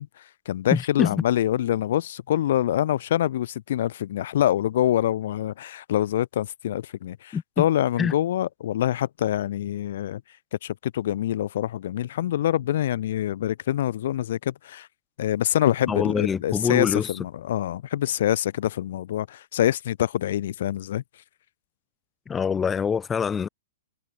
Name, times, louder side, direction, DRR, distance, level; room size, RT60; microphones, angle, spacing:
voice 1, 0.0-10.2 10.6-14.9 15.2-21.0, left 12 dB, 65° left, 1.2 m, -25 dB
voice 2, 0.7-1.1 7.3-7.6 8.0-8.1 15.9-17.1 22.3-23.5, left 6 dB, 15° left, 1.5 m, -25 dB
hypercardioid pair, 135°, 0 cm